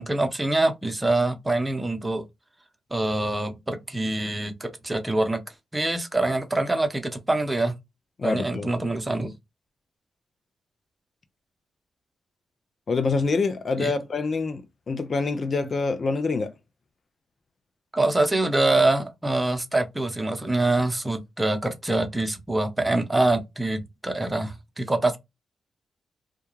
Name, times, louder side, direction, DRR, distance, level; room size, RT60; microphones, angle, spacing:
voice 1, 0.0-2.2 2.9-5.4 5.7-7.7 8.2-9.3 13.8-13.9 17.9-25.2, right 2 dB, 20° right, 0.7 m, -25 dB
voice 2, 8.2-8.7 12.9-16.5, left 4 dB, 55° left, 0.5 m, -26 dB
2.3 x 2.2 x 3.0 m
hypercardioid pair, 40°, 0 cm